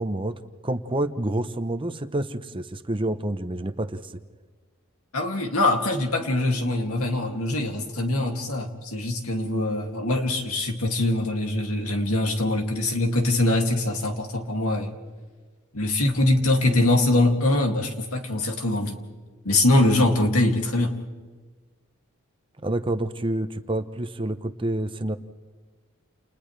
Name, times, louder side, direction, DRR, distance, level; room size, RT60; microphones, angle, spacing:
voice 1, 0.0-4.2 22.6-25.2, right 1 dB, 25° right, 10 dB, 0.8 m, -28 dB
voice 2, 5.1-14.9 15.7-19.0 19.4-21.0, left 2 dB, 85° left, 3 dB, 2.6 m, -23 dB
29.5 x 29.5 x 3.4 m, 1.4 s
head